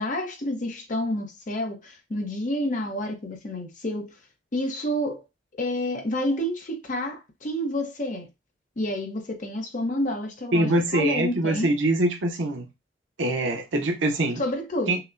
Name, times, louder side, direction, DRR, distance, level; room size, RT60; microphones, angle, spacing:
voice 1, 0.0-4.1 4.5-5.2 5.5-8.3 8.8-11.7 14.4-15.0, left 1 dB, 45° left, 0.7 m, -29 dB
voice 2, 10.5-12.7 13.2-14.4 14.9-15.0, right 1 dB, 90° right, 0.7 m, -24 dB
5.7 x 2.1 x 2.5 m
head